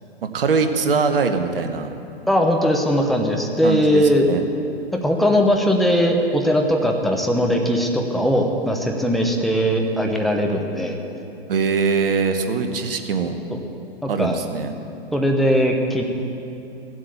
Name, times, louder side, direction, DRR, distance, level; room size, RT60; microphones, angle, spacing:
voice 1, 0.2-1.9 3.6-4.4 11.5-13.4 14.1-14.7, right 5 dB, 65° right, 7 dB, 1.2 m, -22 dB
voice 2, 2.3-4.3 5.0-11.0 13.5-13.6 14.0-14.4 15.1-16.0, equal, ahead, 2 dB, 0.9 m, -19 dB
15.5 x 7.8 x 7.0 m, 2.7 s
figure-of-eight pair, 115°, 31 cm